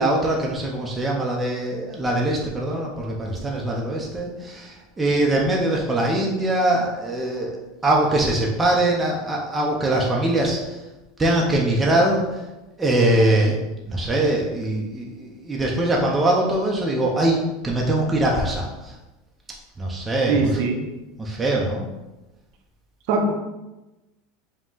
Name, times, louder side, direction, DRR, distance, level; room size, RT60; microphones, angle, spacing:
voice 1, 0.0-7.5 7.8-10.8 11.2-12.4 12.8-13.6 13.9-19.0 19.8-20.7 21.2-21.9, right 1 dB, 15° right, -2 dB, 0.7 m, -22 dB
voice 2, 20.3-20.8 23.1-23.4, right 3 dB, 65° right, 3 dB, 0.7 m, -21 dB
4.9 x 2.3 x 3.8 m, 1.0 s
supercardioid pair, 125°, 0 cm